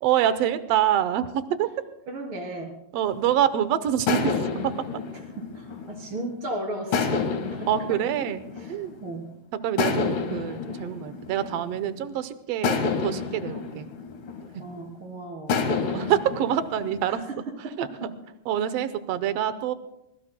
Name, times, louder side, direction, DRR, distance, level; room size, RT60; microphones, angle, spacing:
voice 1, 0.0-1.7 2.9-4.7 7.7-8.9 9.5-13.9 15.8-17.2 17.8-18.1 18.4-19.7, right 10 dB, 70° right, 12 dB, 1.5 m, -26 dB
voice 2, 2.1-2.7 5.5-7.1 7.5-8.1 8.6-9.3 14.6-15.6 17.1-17.2, right 1 dB, 40° right, 1 dB, 4.1 m, -35 dB
sound 1, 3.1-3.5 4.1-6.3 6.9-9.2 9.8-12.0 12.6-14.9 15.5-17.0, left 5 dB, 70° left, 3.2 m, -29 dB
24.5 x 22.0 x 2.2 m, 0.85 s
omnidirectional pair, 3.8 m